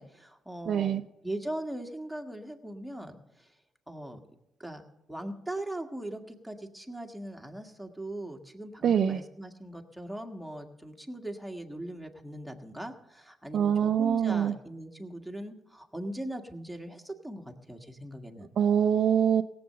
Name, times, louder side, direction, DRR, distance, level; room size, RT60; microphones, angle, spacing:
voice 1, 0.0-3.5 3.9-4.2 4.6-4.8 5.1-18.5, right 1 dB, ahead, 2 dB, 1.6 m, -40 dB
voice 2, 0.7-1.0 8.8-9.2 13.5-14.5 18.6-19.4, right 8 dB, 60° right, 7 dB, 0.5 m, -24 dB
17.0 x 7.7 x 6.8 m, 0.88 s
cardioid pair, 90°, 0 cm